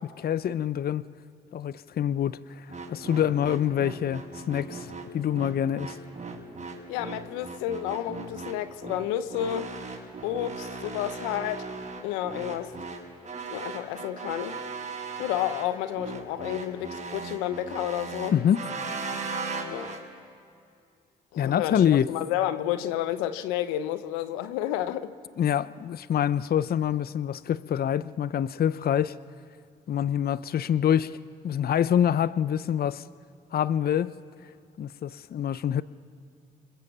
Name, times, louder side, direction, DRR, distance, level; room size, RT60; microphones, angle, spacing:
voice 1, 0.2-1.0 1.5-6.0 18.3-18.6 21.4-22.1 25.4-29.2 29.9-31.2 31.4-33.0 33.5-34.1 34.8-35.8, left 9 dB, 50° left, 16 dB, 0.7 m, -26 dB
sound 1, 2.7-20.0, right 4 dB, 40° right, 6.5 m, -37 dB
voice 2, 6.9-9.7 10.2-11.7 12.0-12.7 13.5-14.6 15.2-18.3 19.7-20.0 21.3-25.1, left 12 dB, 90° left, 12 dB, 0.9 m, -31 dB
29.5 x 26.5 x 7.3 m, 2.2 s
hypercardioid pair, 50°, 20 cm